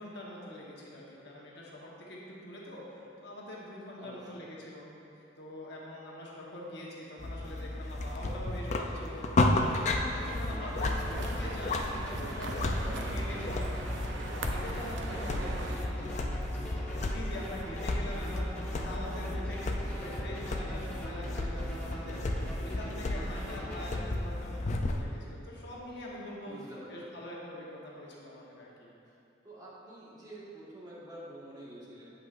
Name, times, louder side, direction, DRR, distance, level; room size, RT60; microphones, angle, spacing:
voice 1, 0.0-4.9 5.4-13.9 14.4-26.6 26.9-28.9, left 1 dB, 65° left, -4 dB, 1.2 m, -44 dB
voice 2, 4.0-4.5 10.5-11.4 12.1-13.5 15.1-16.1 19.5-20.3 26.4-27.2 29.1-29.2 29.4-32.1, right 1 dB, 20° right, -8 dB, 1.6 m, -48 dB
sound 1, 7.2-25.0, left 2 dB, 40° left, 0.4 m, -33 dB
sound 2, 9.8-24.0, equal, 10° left, 1.3 m, -44 dB
sound 3, 10.8-15.8, right 3 dB, 90° right, 0.5 m, -40 dB
8.1 x 7.9 x 2.5 m, 2.7 s
head